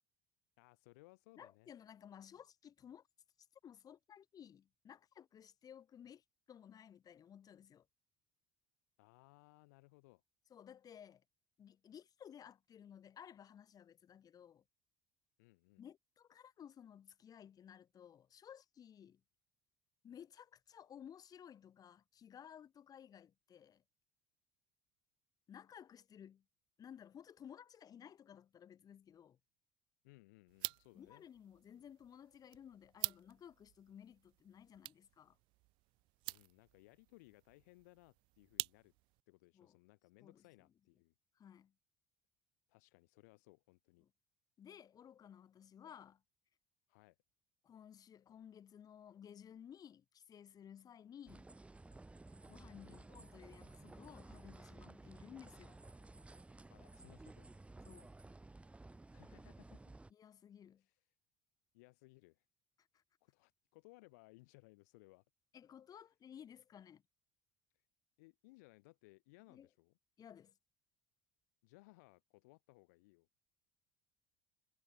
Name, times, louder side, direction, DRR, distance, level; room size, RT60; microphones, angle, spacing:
voice 1, 0.6-1.7 9.0-10.2 15.4-15.8 30.0-31.3 36.3-38.9 39.3-41.1 42.7-44.1 46.9-47.2 52.8-53.1 56.7-57.5 59.1-59.8 60.8-61.0 61.7-62.5 63.2-65.2 65.9-66.0 67.7-67.9 68.2-70.0 71.6-73.3, left 24 dB, 70° left, 1.9 m, -64 dB
voice 2, 1.4-3.1 3.6-7.9 10.5-11.2 11.6-14.6 15.8-19.2 20.0-23.8 25.5-26.4 26.8-29.4 30.9-35.4 39.5-39.8 40.2-40.4 41.4-41.7 44.6-46.2 47.6-51.5 52.5-55.8 57.9-58.1 60.1-60.8 62.9-63.0 65.5-67.0 69.5-69.7 70.2-70.5, left 9 dB, 40° left, 4.5 m, -57 dB
sound 1, 30.5-39.2, right 22 dB, 60° right, 0.7 m, -48 dB
sound 2, 51.3-60.1, right 2 dB, 15° right, 1.7 m, -56 dB
figure-of-eight pair, 60°, 9 cm